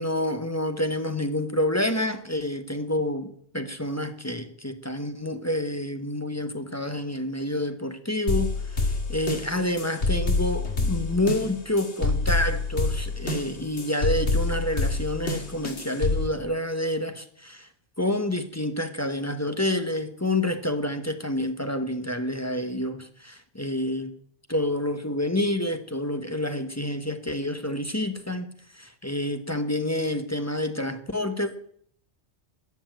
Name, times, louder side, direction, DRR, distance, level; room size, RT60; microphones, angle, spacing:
voice 1, 0.0-17.7 18.0-24.1 24.5-31.7, left 1 dB, 15° left, 8 dB, 1.0 m, -28 dB
sound 1, 8.3-16.3, left 3 dB, 70° left, 2.1 m, -27 dB
13.5 x 7.2 x 9.1 m, 0.63 s
omnidirectional pair, 1.2 m